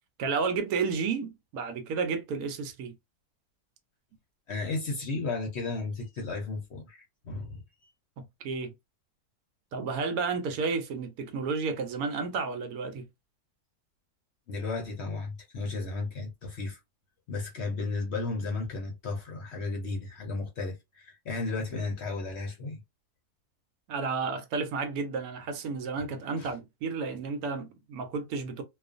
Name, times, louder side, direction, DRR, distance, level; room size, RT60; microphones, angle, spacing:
voice 1, 0.2-2.9 8.2-8.7 9.7-13.1 23.9-28.6, right 4 dB, 75° right, 1.0 m, -32 dB
voice 2, 4.5-7.0 7.2-7.6 14.5-16.8 17.3-22.8 26.4-26.5, left 3 dB, 60° left, 0.8 m, -34 dB
2.4 x 2.3 x 2.4 m
omnidirectional pair, 1.6 m